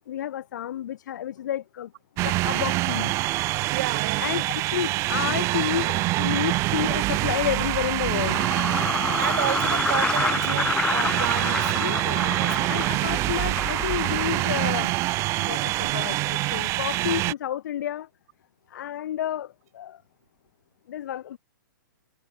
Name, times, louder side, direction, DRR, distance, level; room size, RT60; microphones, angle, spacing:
voice 1, 0.0-3.1 4.2-4.4 4.7-8.4 11.8-12.2 12.7-14.9 15.4-18.1 18.7-20.0 20.9-21.4, left 11 dB, 60° left, 4.8 m, -30 dB
sound 1, 2.2-17.3, right 20 dB, 25° right, 0.7 m, -25 dB
voice 2, 3.7-4.3 9.2-11.7 12.1-12.7 14.3-14.4, right 15 dB, 50° right, 3.3 m, -31 dB
sound 2, 6.1-6.2 7.8-14.5, left 4 dB, 10° left, 1.2 m, -29 dB
hypercardioid pair, 145°, 11 cm